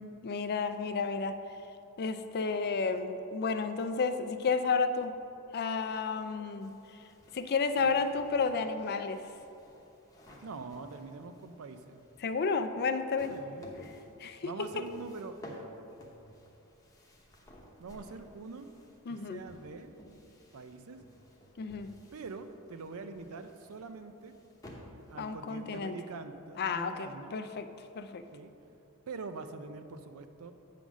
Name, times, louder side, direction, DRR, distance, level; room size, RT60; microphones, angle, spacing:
voice 1, 0.0-1.4 2.0-5.2 5.5-6.7 7.3-9.2 12.2-13.3 14.2-14.5 19.1-19.4 21.6-21.9 25.2-25.9 26.6-27.7 27.9-28.2, left 4 dB, 50° left, 9 dB, 0.4 m, -31 dB
sound 1, 6.6-25.8, equal, 15° left, 0.9 m, -55 dB
voice 2, 10.4-12.0 13.3-13.7 14.4-15.7 17.8-18.7 19.1-19.9 20.5-21.0 22.1-24.3 25.1-27.4 28.3-28.5 29.1-30.5, right 4 dB, 75° right, 9 dB, 0.5 m, -44 dB
8.4 x 3.9 x 6.1 m, 2.9 s
head